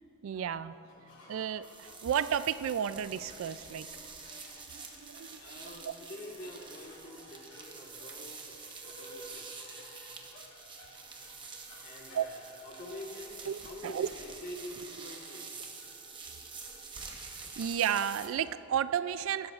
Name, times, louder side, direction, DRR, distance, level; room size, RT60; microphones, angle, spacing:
voice 1, 0.2-0.9 1.3-3.9 4.7-5.4 12.1-12.3 13.5-14.1 17.3-19.5, right 8 dB, 85° right, 15 dB, 0.3 m, -32 dB
sound 1, 0.8-18.6, left 1 dB, 60° left, 2.3 m, -56 dB
sound 2, 1.6-18.3, right 4 dB, 25° right, 1.0 m, -47 dB
voice 2, 5.4-8.6 8.8-9.6 11.8-15.5, left 1 dB, 45° left, 0 dB, 1.5 m, -47 dB
18.5 x 12.5 x 2.5 m, 2.6 s
head